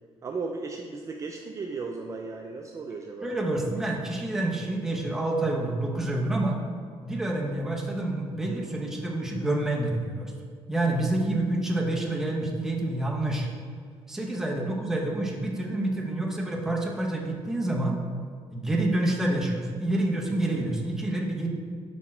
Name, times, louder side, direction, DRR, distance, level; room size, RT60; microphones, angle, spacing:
voice 1, 0.2-3.3 14.6-14.8, right 4 dB, 30° right, 2 dB, 0.3 m, -36 dB
voice 2, 3.2-6.6 7.0-10.3 10.7-13.5 14.1-18.0 18.5-21.5, right 1 dB, 5° right, -2 dB, 0.8 m, -28 dB
5.3 x 4.2 x 4.3 m, 2.1 s
cardioid pair, 130°, 10 cm